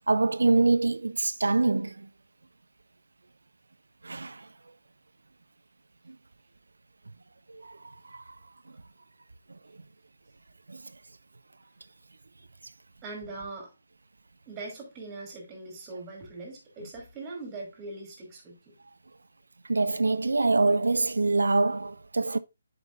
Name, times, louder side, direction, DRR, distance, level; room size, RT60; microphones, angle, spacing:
voice 1, 0.1-2.1 4.0-4.5 6.1-6.2 7.5-7.8 8.1-8.3 10.7-10.8 19.7-22.4, right 3 dB, 65° right, 0.4 m, -25 dB
voice 2, 13.0-13.7 14.5-18.7, right 3 dB, 20° right, 3.0 m, -41 dB
11.0 x 5.2 x 2.6 m
figure-of-eight pair, 140°, 0 cm